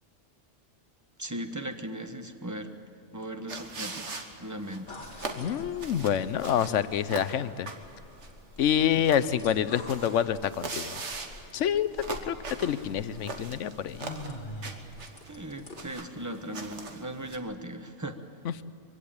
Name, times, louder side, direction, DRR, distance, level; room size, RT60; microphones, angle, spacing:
voice 1, 1.2-2.7 3.1-4.9 15.3-18.2, right 1 dB, 15° right, 7 dB, 1.1 m, -38 dB
sound 1, 3.5-17.4, right 4 dB, 70° right, 1.8 m, -41 dB
sound 2, 4.9-15.9, left 1 dB, 45° left, 2.1 m, -46 dB
voice 2, 5.3-7.7 8.6-11.0 11.5-11.9 12.3-14.0 18.4-18.6, left 9 dB, 90° left, 14 dB, 1.0 m, -27 dB
23.0 x 16.0 x 8.8 m, 2.5 s
omnidirectional pair, 1.2 m